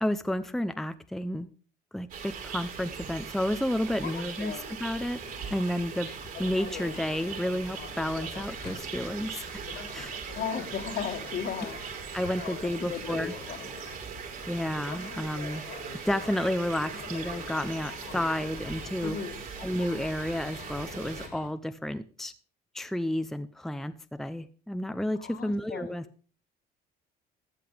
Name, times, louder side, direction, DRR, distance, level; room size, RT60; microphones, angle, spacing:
voice 1, 0.0-1.5 1.9-5.2 5.5-6.1 6.4-9.6 9.9-10.2 12.1-13.3 14.5-15.6 16.0-19.2 19.6-22.3 22.7-26.0, left 1 dB, ahead, 11 dB, 0.7 m, -31 dB
sound 1, 2.1-21.3, right 6 dB, 55° right, 5.3 m, -40 dB
voice 2, 4.0-4.8 10.3-11.8 12.8-13.7 19.0-19.4 25.2-26.0, left 7 dB, 65° left, 6 dB, 2.2 m, -36 dB
sound 2, 5.0-21.5, left 7 dB, 80° left, 3.5 m, -45 dB
14.5 x 8.4 x 5.1 m, 0.38 s
cardioid pair, 110°, 17 cm